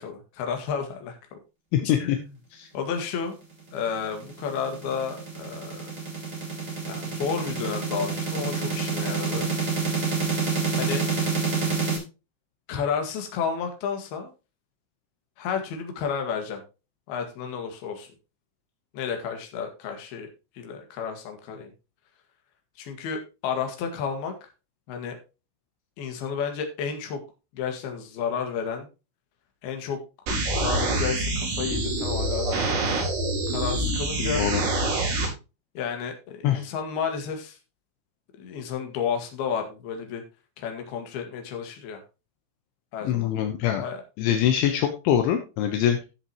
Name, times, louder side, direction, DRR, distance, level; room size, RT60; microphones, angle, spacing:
voice 1, 0.0-1.4 1.8-2.3 2.7-3.4 3.7-5.9 6.9-9.5 10.8-11.0 12.7-14.3 15.4-16.6 17.1-18.1 18.9-20.3 20.6-21.7 22.8-24.3 24.9-25.2 26.0-27.2 27.5-28.9 29.6-30.0 30.6-32.9 33.5-34.4 35.8-37.6 38.4-40.2 40.6-42.0 42.9-43.3 43.8-44.0, left 6 dB, 60° left, 4 dB, 3.4 m, -31 dB
voice 2, 1.7-2.2 2.5-2.7 34.2-34.6 34.9-35.0 36.4-36.6 43.0-43.8 44.2-46.1, left 10 dB, 75° left, 5 dB, 3.3 m, -24 dB
sound 1, 3.9-12.0, right 4 dB, 30° right, 3.8 m, -28 dB
sound 2, 30.3-35.3, right 2 dB, 85° right, 7.3 m, -26 dB
14.0 x 7.4 x 3.0 m, 0.30 s
omnidirectional pair, 5.6 m